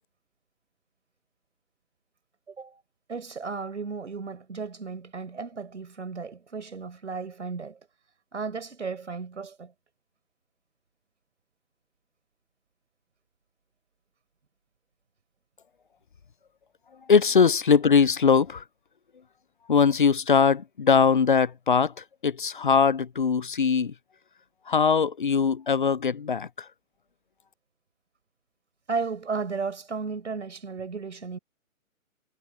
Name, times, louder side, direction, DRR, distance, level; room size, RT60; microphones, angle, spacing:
voice 1, 2.5-2.8 3.1-7.8 8.3-9.7 28.9-31.4, right 4 dB, 60° right, 4.7 m, -34 dB
voice 2, 17.1-18.6 19.7-23.9 24.7-26.7, left 6 dB, 40° left, 0.6 m, -21 dB
figure-of-eight pair, 135°, 41 cm